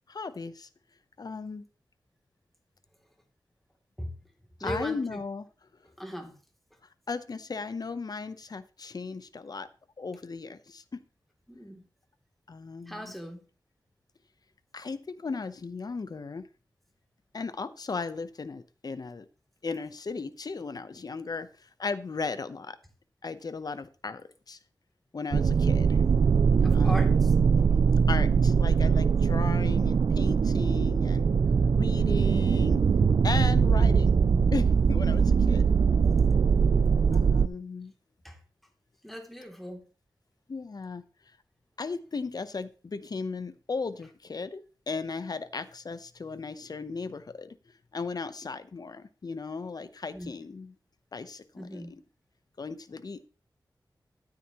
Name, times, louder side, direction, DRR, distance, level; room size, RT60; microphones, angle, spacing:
voice 1, 0.1-0.7 1.2-1.7 4.6-5.5 7.1-9.7 10.0-11.0 12.5-13.1 14.7-16.5 17.3-19.3 19.6-21.5 21.8-22.8 23.2-24.6 25.1-26.0 26.7-27.4 28.1-31.3 31.8-32.8 33.2-34.2 34.5-35.7 37.1-37.9 40.5-41.0 41.8-44.6 44.9-47.6 47.9-50.7 51.1-52.0 52.6-53.3, left 4 dB, 55° left, 0.8 m, -36 dB
voice 2, 4.6-5.2 6.0-6.4 11.5-11.8 12.9-13.4 26.6-27.3 31.4-31.8 38.2-38.4 39.0-39.9 50.1-50.3 51.6-51.9, equal, ahead, 2.8 m, -38 dB
sound 1, 25.3-37.5, right 6 dB, 60° right, 0.4 m, -22 dB
12.5 x 9.2 x 3.0 m
wide cardioid pair, 70°, 8 cm